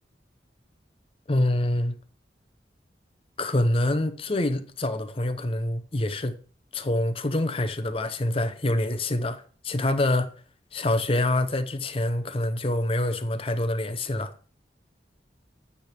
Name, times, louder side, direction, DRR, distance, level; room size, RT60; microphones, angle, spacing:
voice 1, 1.3-2.0 3.4-6.4 6.7-10.3 10.7-14.3, left 1 dB, 30° left, 0.7 m, -26 dB
9.3 x 3.4 x 6.6 m
head